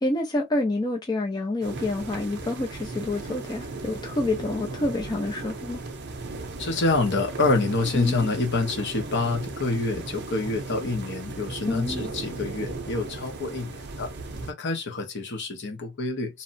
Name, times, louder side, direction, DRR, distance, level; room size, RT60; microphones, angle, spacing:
voice 1, 0.0-5.8 7.9-8.3 11.7-12.1, left 2 dB, 20° left, 0.4 m, -28 dB
sound 1, 1.6-14.5, right 3 dB, 50° right, 0.6 m, -36 dB
voice 2, 6.6-14.1 14.5-16.4, left 3 dB, 55° left, 0.8 m, -27 dB
2.8 x 2.0 x 2.6 m
head